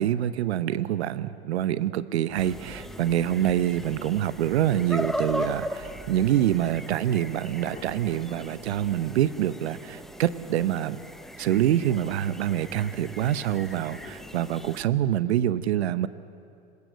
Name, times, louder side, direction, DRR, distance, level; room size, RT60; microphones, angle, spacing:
voice 1, 0.0-11.0 11.4-16.1, right 11 dB, 80° right, 15 dB, 0.9 m, -26 dB
sound 1, 2.3-7.3, right 5 dB, 45° right, 4.1 m, -48 dB
sound 2, 2.4-14.8, equal, ahead, 0.9 m, -38 dB
sound 3, 6.4-14.5, left 5 dB, 25° left, 2.3 m, -54 dB
26.0 x 21.0 x 8.1 m, 2.5 s
hypercardioid pair, 85°, 33 cm